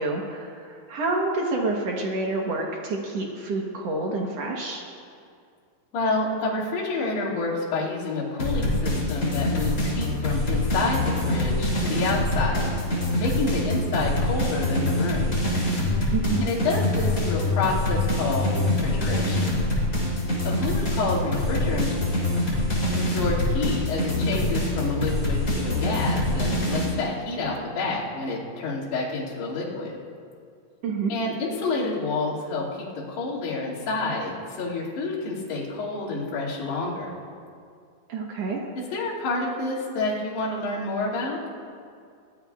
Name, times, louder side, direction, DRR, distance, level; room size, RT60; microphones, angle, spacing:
voice 1, 0.0-4.8 16.1-16.5 30.8-31.1 38.1-38.6, right 3 dB, 90° right, -1 dB, 1.4 m, -28 dB
voice 2, 5.9-12.7 13.2-15.3 16.4-19.5 20.4-21.9 22.7-29.9 31.1-37.1 38.9-41.4, left 3 dB, 70° left, -8 dB, 4.5 m, -28 dB
sound 1, 8.4-26.9, left 1 dB, 20° left, 3.4 m, -25 dB
21.0 x 18.0 x 2.4 m, 2.3 s
omnidirectional pair, 4.8 m